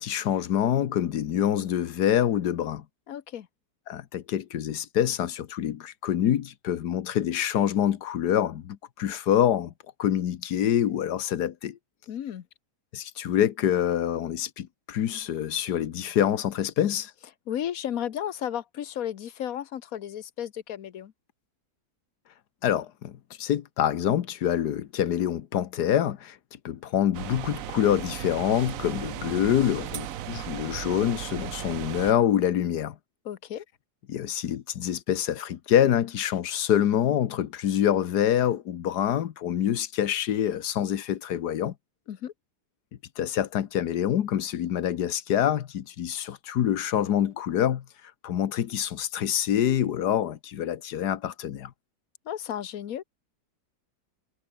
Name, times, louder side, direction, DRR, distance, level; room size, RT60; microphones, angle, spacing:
voice 1, 0.0-2.8 3.9-9.7 10.0-11.8 12.9-17.1 22.6-26.4 26.6-33.0 34.1-41.7 43.2-47.8 48.2-51.7, left 10 dB, 75° left, 1.6 m, -26 dB
voice 2, 3.1-3.5 12.1-12.4 17.5-21.1 33.2-33.6 42.1-42.3 52.3-53.0, left 10 dB, 60° left, 1.4 m, -33 dB
sound 1, 27.1-32.1, right 12 dB, 60° right, 1.0 m, -36 dB
omnidirectional pair, 1.7 m